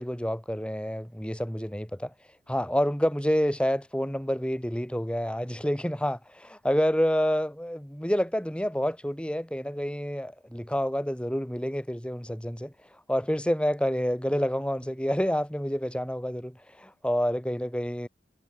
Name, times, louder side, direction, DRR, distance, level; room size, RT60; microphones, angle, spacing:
voice 1, 0.0-2.1 2.5-12.7 13.1-18.1, equal, 5° left, 3.1 m, -28 dB
head